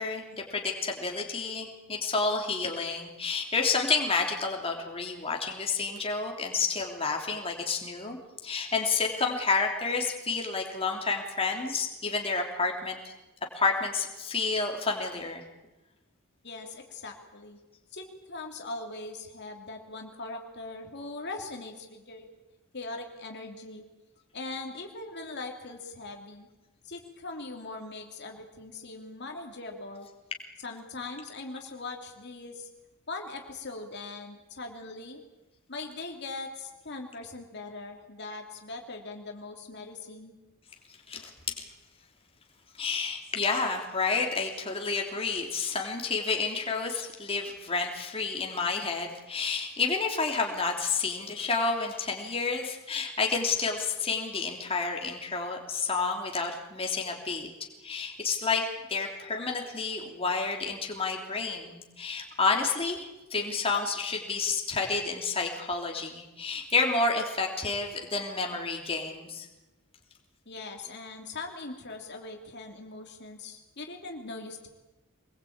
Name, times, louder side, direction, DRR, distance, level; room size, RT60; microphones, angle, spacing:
voice 1, 0.0-13.1 13.5-15.4 41.1-41.3 42.8-57.5 57.8-69.5, left 4 dB, 25° left, 1 dB, 3.3 m, -30 dB
voice 2, 16.4-17.6 17.9-22.3 22.7-23.8 24.3-26.5 26.8-30.1 30.6-32.7 33.1-35.2 35.7-40.3 70.5-74.7, left 3 dB, 55° left, 3 dB, 2.9 m, -41 dB
24.5 x 21.0 x 8.8 m, 1.1 s
head